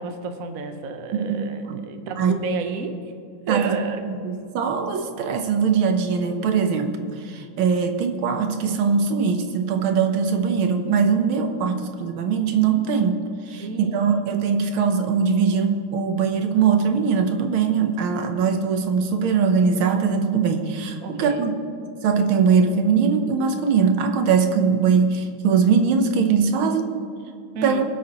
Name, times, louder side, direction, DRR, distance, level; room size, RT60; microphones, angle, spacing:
voice 1, 0.0-3.0 3.5-4.0 13.6-14.2 21.0-21.5 27.5-27.8, right 4 dB, 55° right, 6 dB, 1.1 m, -31 dB
voice 2, 1.1-1.8 2.2-2.3 3.5-3.8 4.1-13.2 13.5-21.5 22.0-26.9 27.6-27.8, right 6 dB, 85° right, 6 dB, 1.7 m, -21 dB
23.0 x 8.3 x 3.0 m, 2.4 s
omnidirectional pair, 2.2 m